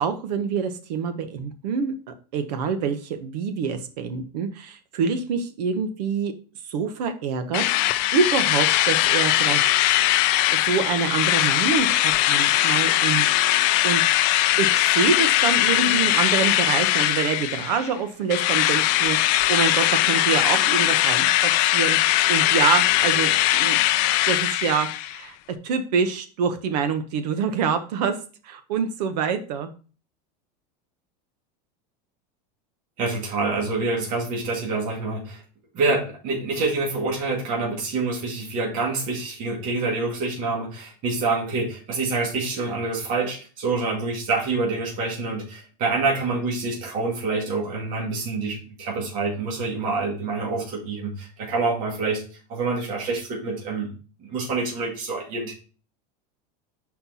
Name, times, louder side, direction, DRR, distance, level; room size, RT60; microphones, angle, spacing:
voice 1, 0.0-6.3 6.6-7.6 8.1-10.1 10.5-14.0 14.6-23.8 24.3-25.4 25.6-28.2 28.4-29.7, right 6 dB, 80° right, 9 dB, 1.1 m, -26 dB
Drill, 7.5-17.9 18.3-25.2, left 15 dB, 40° left, 0.4 m, -20 dB
voice 2, 33.0-35.4 35.7-52.2 52.5-53.9 54.2-55.5, right 3 dB, 40° right, -2 dB, 2.1 m, -26 dB
5.7 x 4.4 x 4.1 m, 0.37 s
supercardioid pair, 165°, 21 cm